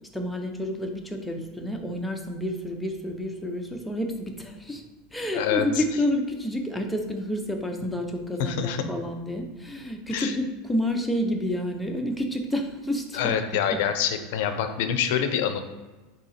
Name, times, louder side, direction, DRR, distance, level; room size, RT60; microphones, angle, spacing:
voice 1, 0.1-4.8 5.1-13.4 13.7-13.8, left 1 dB, 5° left, 3 dB, 0.6 m, -29 dB
voice 2, 5.3-5.7 8.4-8.8 10.1-10.3 13.1-15.6, left 8 dB, 70° left, 8 dB, 0.5 m, -26 dB
3.7 x 2.8 x 4.2 m, 1.2 s
supercardioid pair, 115°, 0 cm